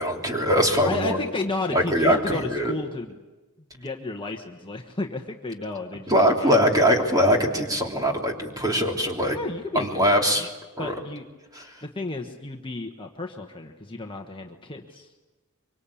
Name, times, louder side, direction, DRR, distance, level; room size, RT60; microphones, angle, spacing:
voice 1, 0.0-1.2 1.7-2.7 6.1-9.4 9.7-10.5 10.8-10.9 11.5-11.6, equal, 15° right, 1 dB, 3.3 m, -22 dB
voice 2, 0.9-3.1 3.7-6.6 9.3-10.1 10.3-10.5 10.8-11.2 11.8-15.1, left 2 dB, 25° left, 2 dB, 1.3 m, -32 dB
24.5 x 24.5 x 8.6 m, 1.2 s
head